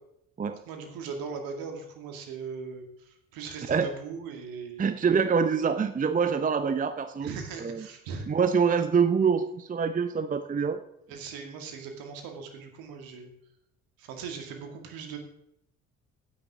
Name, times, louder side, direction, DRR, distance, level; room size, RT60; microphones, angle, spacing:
voice 1, 0.7-4.8 7.2-8.3 11.1-13.3 14.0-15.2, right 5 dB, 60° right, 4 dB, 2.3 m, -39 dB
voice 2, 4.8-7.3 7.6-7.9 8.3-10.8, right 6 dB, 20° right, 10 dB, 0.7 m, -25 dB
15.5 x 9.8 x 3.7 m, 0.76 s
figure-of-eight pair, 50°, 39 cm